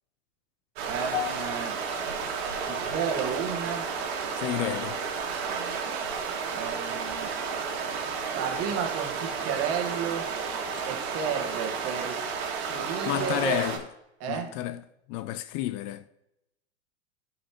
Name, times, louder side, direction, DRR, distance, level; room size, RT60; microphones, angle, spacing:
sound 1, 0.8-13.8, right 5 dB, 60° right, 1.8 m, -32 dB
voice 1, 0.9-1.8 2.7-3.9 5.5-5.8 6.5-7.3 8.4-10.3 10.8-12.3 12.7-13.7 14.2-14.6, right 7 dB, 45° right, 1.5 m, -32 dB
sound 2, 1.1-5.5 5.8-6.2 6.8-6.9, left 11 dB, 65° left, 1.4 m, -41 dB
voice 2, 4.4-5.0 13.1-13.8 14.3-14.8 15.1-16.1, left 13 dB, 45° left, 0.4 m, -30 dB
12.5 x 5.6 x 2.9 m
hypercardioid pair, 100°, 34 cm